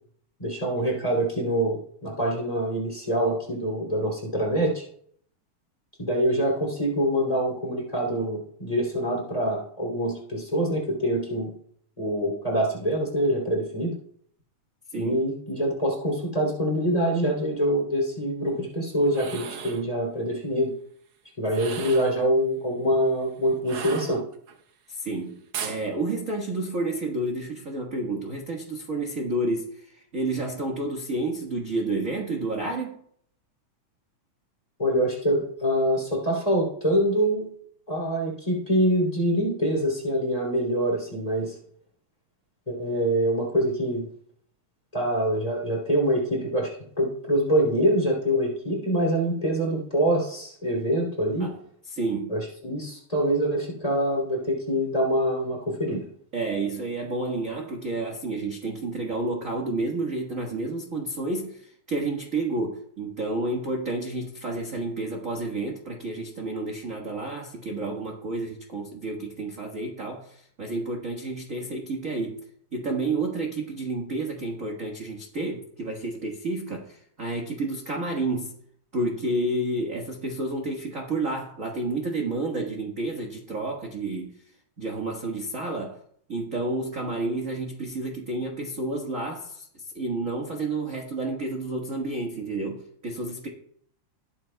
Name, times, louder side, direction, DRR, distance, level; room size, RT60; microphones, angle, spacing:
voice 1, 0.4-4.8 6.0-11.5 12.0-13.9 15.0-20.7 21.4-24.2 34.8-37.5 37.9-41.5 42.7-44.1 44.9-46.7 47.0-51.5 52.3-56.1, right 1 dB, 10° left, -3 dB, 2.6 m, -25 dB
sound 1, 19.0-19.9 21.5-22.2 23.6-24.5 25.5-25.8, right 7 dB, 65° right, 1.5 m, -36 dB
voice 2, 24.9-33.0 51.4-51.6 51.8-52.4 56.3-72.4 72.7-78.5 78.9-84.3 84.8-86.0 86.3-93.5, right 2 dB, 40° right, 0 dB, 1.1 m, -30 dB
19.5 x 8.8 x 2.3 m, 0.63 s
omnidirectional pair, 3.6 m